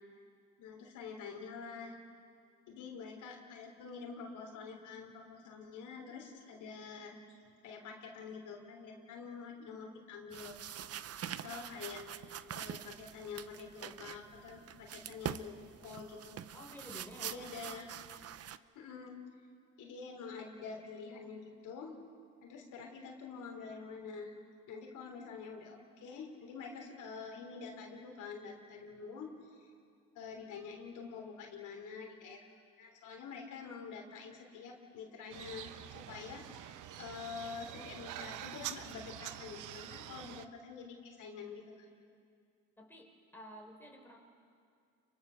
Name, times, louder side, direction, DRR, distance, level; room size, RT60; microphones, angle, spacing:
voice 1, 0.6-1.9 2.7-7.2 7.6-10.6 11.3-12.0 12.5-16.4 17.2-17.9 18.7-19.2 19.8-22.0 22.4-24.3 24.7-29.7 30.1-32.4 32.8-41.9, left 5 dB, 85° left, 1 dB, 3.4 m, -47 dB
sound 1, 10.3-18.6, right 10 dB, 55° right, 0.7 m, -45 dB
voice 2, 16.5-17.5 42.8-44.2, equal, 5° left, 0 dB, 4.3 m, -51 dB
sound 2, 35.3-40.5, right 11 dB, 85° right, 0.9 m, -46 dB
29.0 x 23.0 x 6.4 m, 2.3 s
cardioid pair, 90°, 30 cm